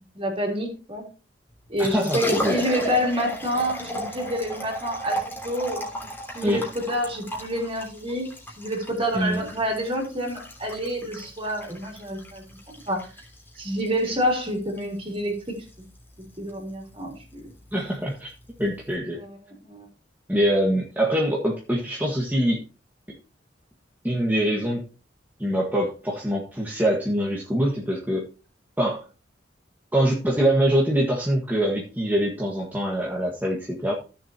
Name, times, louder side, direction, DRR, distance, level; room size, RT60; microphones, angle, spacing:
voice 1, 0.1-1.0 1.7-5.8 6.3-8.3 8.6-12.4 12.9-13.1 13.6-15.6 16.4-17.5 19.0-19.4 19.6-19.9, equal, 30° right, 0 dB, 3.8 m, -28 dB
Liquid, 1.6-18.9, equal, 10° left, 3.1 m, -35 dB
voice 2, 1.8-2.6 6.4-6.6 9.1-9.4 17.7-18.3 18.6-19.2 20.3-22.6 24.0-24.9 25.4-28.3 28.8-29.1 29.9-33.9, equal, 10° right, -3 dB, 1.7 m, -24 dB
15.5 x 7.1 x 2.9 m, 0.34 s
head